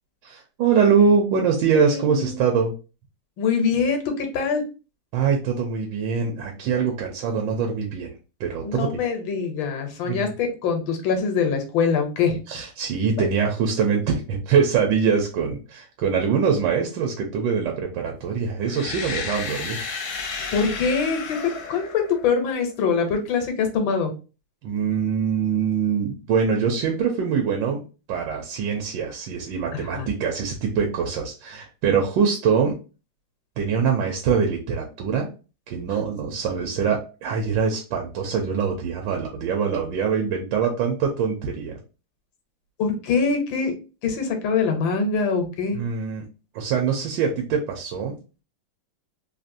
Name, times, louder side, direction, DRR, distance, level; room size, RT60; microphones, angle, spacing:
voice 1, 0.2-2.7 5.1-8.1 8.4-8.9 10.1-10.3 12.5-19.8 24.6-27.8 28.1-32.7 33.6-35.3 35.7-41.8 45.7-46.2 46.5-48.2, right 6 dB, 80° right, 2 dB, 1.3 m, -23 dB
voice 2, 1.7-2.6 3.4-4.6 8.6-12.4 20.5-21.4 21.7-24.1 29.7-30.1 42.8-43.8 44.0-45.8, left 5 dB, 85° left, 5 dB, 1.5 m, -24 dB
sound 1, 18.6-22.6, left 5 dB, 65° left, 0.8 m, -32 dB
3.5 x 2.5 x 2.6 m, 0.33 s
omnidirectional pair, 2.0 m